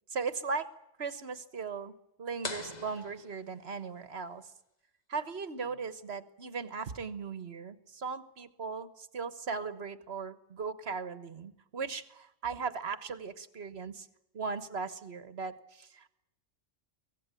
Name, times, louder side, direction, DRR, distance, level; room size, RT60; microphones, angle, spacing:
voice 1, 0.1-0.7 1.0-1.9 2.2-4.5 5.1-14.1 14.3-16.1, right 5 dB, 55° right, 14 dB, 1.6 m, -38 dB
sound 1, 2.4-4.1, left 3 dB, 35° left, 1.6 m, -43 dB
23.5 x 18.0 x 9.1 m, 0.85 s
omnidirectional pair, 1.3 m